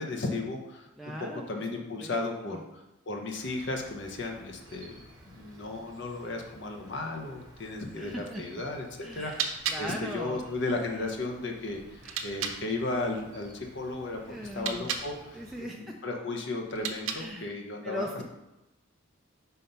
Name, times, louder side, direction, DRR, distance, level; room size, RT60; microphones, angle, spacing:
voice 1, 0.0-0.9 1.5-18.2, left 2 dB, 55° left, 2 dB, 0.8 m, -35 dB
voice 2, 1.0-1.4 2.0-2.2 2.5-2.6 8.0-8.4 9.0-9.4 9.7-10.4 12.0-12.2 14.3-14.9 15.3-16.0 17.1-17.5 17.8-18.2, equal, ahead, -2 dB, 0.4 m, -39 dB
Insect, 3.4-15.6, right 1 dB, 20° right, 1.2 m, -54 dB
sound 1, 9.2-12.6 14.4-15.1 16.6-17.5, right 7 dB, 75° right, 0.8 m, -36 dB
5.8 x 4.1 x 5.4 m, 0.95 s
head